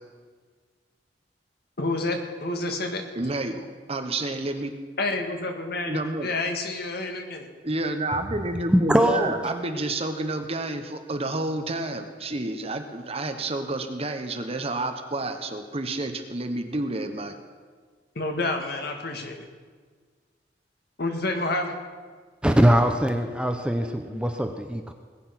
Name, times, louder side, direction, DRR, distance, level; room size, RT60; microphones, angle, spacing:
voice 1, 1.8-3.0 5.0-7.5 18.2-19.4 21.0-21.7 24.1-24.3, left 2 dB, 60° left, 4 dB, 1.9 m, -29 dB
voice 2, 3.1-4.7 5.9-6.3 7.6-17.3, right 2 dB, 35° right, 6 dB, 1.2 m, -30 dB
voice 3, 8.7-9.4 22.4-24.9, equal, 5° right, 6 dB, 0.7 m, -21 dB
19.5 x 9.4 x 5.9 m, 1.5 s
head